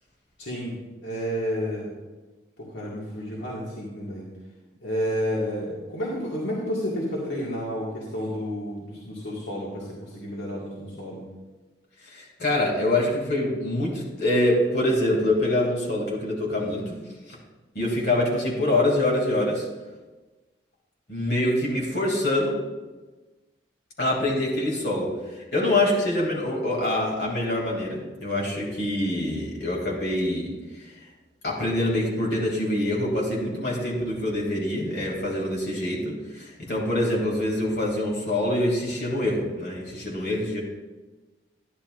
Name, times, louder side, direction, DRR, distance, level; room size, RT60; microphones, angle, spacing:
voice 1, 0.4-0.8 1.0-1.9 2.6-4.3 4.8-11.2, equal, 80° left, -6 dB, 2.0 m, -31 dB
voice 2, 12.0-17.0 17.3-17.4 17.7-19.7 21.1-22.6 24.0-31.1 31.4-40.6, left 1 dB, 60° left, -3 dB, 2.8 m, -25 dB
12.0 x 10.5 x 2.6 m, 1.2 s
head